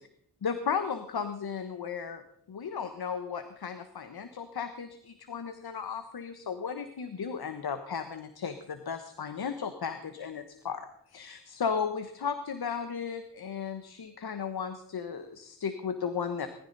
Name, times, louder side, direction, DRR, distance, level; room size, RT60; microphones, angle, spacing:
voice 1, 0.4-2.2 2.5-16.5, left 6 dB, 65° left, 9 dB, 1.2 m, -35 dB
19.5 x 14.0 x 4.1 m, 0.69 s
cardioid pair, 50°, 40 cm